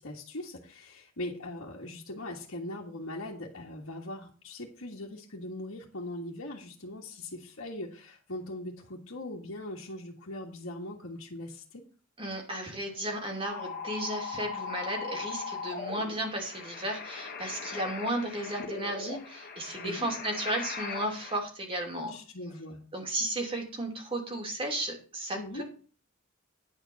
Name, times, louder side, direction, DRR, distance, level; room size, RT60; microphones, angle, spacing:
voice 1, 0.0-11.8 19.8-20.1 22.1-22.8 25.4-25.6, left 1 dB, 75° left, -5 dB, 1.8 m, -40 dB
voice 2, 12.2-22.2 22.9-25.6, right 1 dB, 25° right, 2 dB, 2.8 m, -34 dB
sound 1, 13.4-21.4, left 5 dB, 45° left, 1.3 m, -39 dB
10.5 x 5.2 x 7.1 m, 0.39 s
head